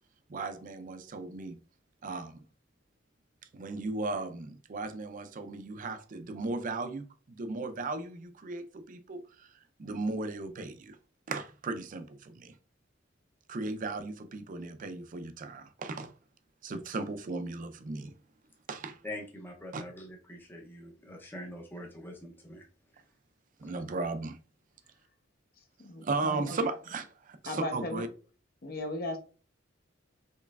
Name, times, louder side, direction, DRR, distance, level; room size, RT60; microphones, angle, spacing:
voice 1, 0.3-1.6 2.0-2.4 3.5-9.5 9.8-11.0 11.3-12.5 13.5-16.1 16.6-18.1 18.7-19.0 19.7-19.8 23.6-24.4 26.0-28.1, right 3 dB, 40° right, 0.4 m, -36 dB
voice 2, 19.0-22.7, left 1 dB, 10° left, 0.6 m, -44 dB
voice 3, 25.8-26.6 27.5-28.0 28.6-29.2, left 1 dB, 50° left, 0.8 m, -36 dB
4.5 x 3.1 x 2.3 m
head